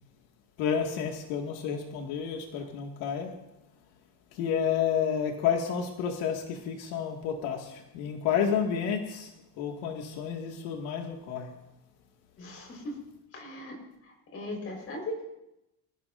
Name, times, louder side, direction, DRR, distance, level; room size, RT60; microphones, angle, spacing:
voice 1, 0.6-3.3 4.3-9.3 9.6-11.5, left 7 dB, 80° left, 1 dB, 2.1 m, -30 dB
voice 2, 12.4-12.9 13.3-13.8 14.3-15.2, left 1 dB, 30° left, 1 dB, 4.4 m, -38 dB
26.5 x 15.5 x 2.6 m, 0.89 s
cardioid pair, 175°, 44 cm